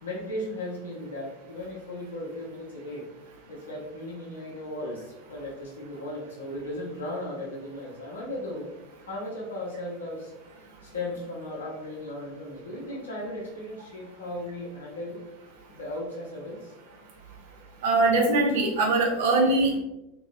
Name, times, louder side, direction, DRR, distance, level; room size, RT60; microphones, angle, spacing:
voice 1, 0.0-3.1 3.5-8.7 9.1-10.3 10.8-15.2 15.7-16.7, left 1 dB, 70° left, -5 dB, 1.0 m, -36 dB
voice 2, 17.8-19.8, right 2 dB, 60° right, 0 dB, 0.7 m, -22 dB
2.9 x 2.8 x 2.3 m, 0.91 s
figure-of-eight pair, 80°, 0 cm